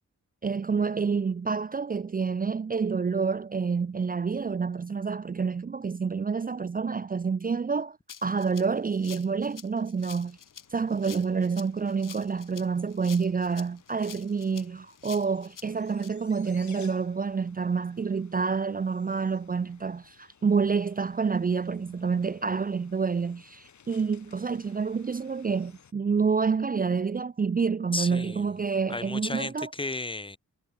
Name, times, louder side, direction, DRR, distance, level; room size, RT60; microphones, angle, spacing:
voice 1, 0.4-10.4 10.7-29.7, right 5 dB, 30° right, 0.6 m, -28 dB
Rattle (instrument), 8.1-16.1, left 8 dB, 80° left, 7.9 m, -47 dB
sound 1, 10.0-25.9, left 7 dB, 65° left, 5.3 m, -57 dB
voice 2, 27.9-28.5 28.9-30.4, left 2 dB, 15° left, 0.9 m, -33 dB
wide cardioid pair, 175°, 32 cm